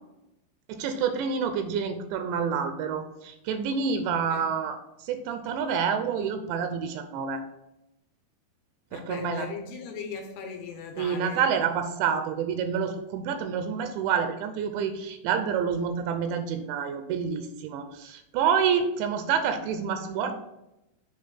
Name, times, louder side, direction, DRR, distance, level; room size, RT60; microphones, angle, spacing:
voice 1, 0.7-7.4 8.9-9.5 11.0-20.4, right 6 dB, 85° right, 8 dB, 2.8 m, -28 dB
voice 2, 8.9-11.5, left 5 dB, 80° left, 4 dB, 2.5 m, -38 dB
7.5 x 3.4 x 6.2 m, 0.90 s
omnidirectional pair, 5.3 m